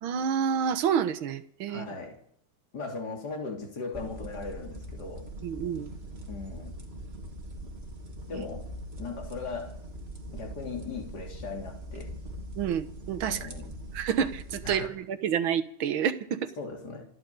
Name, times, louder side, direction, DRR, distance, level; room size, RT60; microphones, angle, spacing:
voice 1, 0.0-1.9 5.4-5.9 8.3-8.5 12.6-13.5 13.9-16.5, right 8 dB, 70° right, 1.9 m, -29 dB
voice 2, 1.7-2.2 2.7-5.3 6.3-6.7 8.3-8.7 9.0-9.7 10.3-12.1 13.3-13.7 14.6-14.9 16.6-17.1, left 4 dB, 45° left, 3.5 m, -38 dB
sound 1, 3.9-14.9, equal, 30° right, 2.7 m, -42 dB
28.0 x 9.4 x 5.3 m
omnidirectional pair, 2.4 m